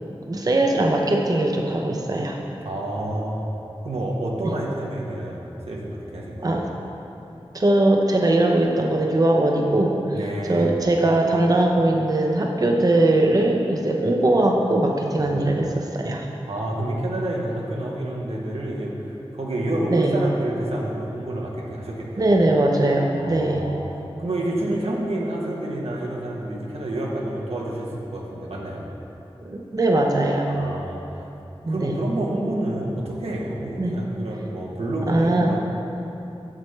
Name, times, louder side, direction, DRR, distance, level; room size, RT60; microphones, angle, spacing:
voice 1, 0.3-2.4 4.4-4.5 6.4-6.7 7.5-10.2 10.5-16.3 19.9-20.2 22.2-23.7 29.4-30.5 31.6-32.0 33.8-34.0 35.1-35.5, right 1 dB, 40° right, 1 dB, 0.6 m, -20 dB
voice 2, 2.6-3.5 3.8-6.6 10.1-10.7 15.2-15.4 16.5-22.3 23.2-28.8 30.5-31.3 31.7-35.6, right 1 dB, 90° right, -3 dB, 0.9 m, -28 dB
7.4 x 6.7 x 3.3 m, 2.9 s
wide cardioid pair, 55°, 10 cm